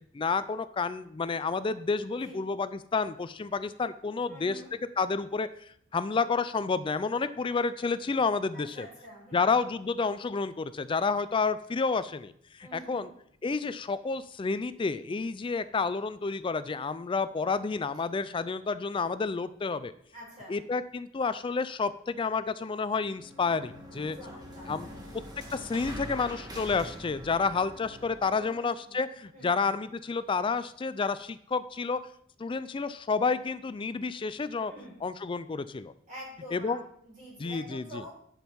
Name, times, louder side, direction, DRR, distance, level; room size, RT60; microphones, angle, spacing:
voice 1, 0.1-4.6 5.0-8.9 9.3-13.1 13.4-19.9 20.5-24.2 24.7-24.9 25.5-32.0 32.4-34.7 35.0-35.9 36.5-36.8 37.4-38.0, left 4 dB, 25° left, 14 dB, 0.3 m, -30 dB
voice 2, 4.3-4.7 8.5-9.4 12.6-13.1 20.1-20.6 24.2-25.1 28.3-29.0 29.3-29.5 34.6-35.0 36.1-38.1, equal, 35° right, -6 dB, 3.6 m, -47 dB
sound 1, 23.0-28.5, equal, 20° right, 1.5 m, -44 dB
11.5 x 5.2 x 4.6 m, 0.66 s
head